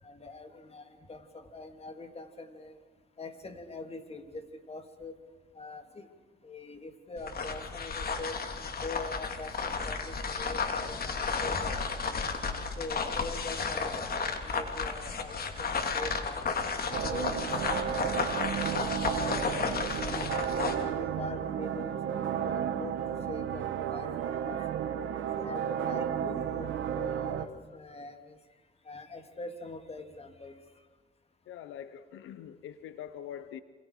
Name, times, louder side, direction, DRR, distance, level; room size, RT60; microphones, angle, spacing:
voice 1, 0.0-2.8 3.2-5.1 5.5-6.1 6.4-12.2 12.8-16.4 16.9-20.3 20.8-24.7 25.3-28.4 28.8-30.6, left 2 dB, 30° left, 6 dB, 3.1 m, -43 dB
sound 1, 7.2-20.8, left 5 dB, 50° left, 3.2 m, -33 dB
sound 2, 16.9-27.5, right 9 dB, 75° right, 1.8 m, -33 dB
voice 2, 31.5-33.6, left 9 dB, 85° left, 12 dB, 1.1 m, -43 dB
28.0 x 27.5 x 5.0 m, 1.3 s
cardioid pair, 90°, 20 cm